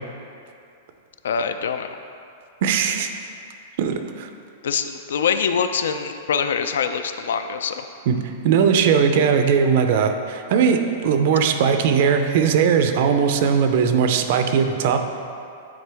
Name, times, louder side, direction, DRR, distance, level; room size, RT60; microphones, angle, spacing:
voice 1, 1.2-2.0 4.6-7.8, left 6 dB, 90° left, 9 dB, 0.4 m, -24 dB
voice 2, 2.6-3.1 3.8-4.3 8.1-8.2 8.4-15.0, right 6 dB, 45° right, 7 dB, 0.4 m, -19 dB
9.6 x 3.7 x 3.4 m, 2.5 s
supercardioid pair, 175°, 0 cm